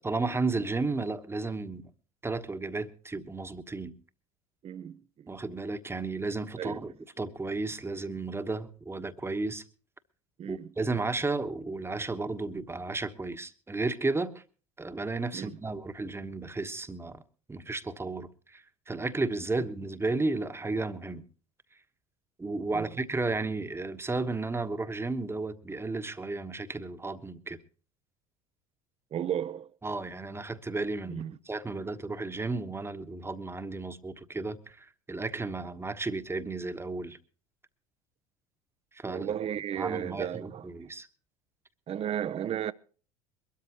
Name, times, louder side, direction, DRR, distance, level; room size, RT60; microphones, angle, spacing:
voice 1, 0.0-1.8 2.2-3.9 5.3-6.9 7.2-9.6 10.5-14.4 14.8-17.2 17.5-21.2 22.4-27.6 29.8-37.2 38.9-39.4 39.8-41.1, right 3 dB, 15° right, 1.2 m, -33 dB
voice 2, 4.6-5.3 6.6-6.8 10.4-10.7 15.3-15.6 22.7-22.9 29.1-29.7 31.1-31.3 39.1-40.7 41.9-42.7, right 9 dB, 35° right, 0.7 m, -34 dB
23.0 x 13.0 x 3.0 m
hypercardioid pair, 70°, 17 cm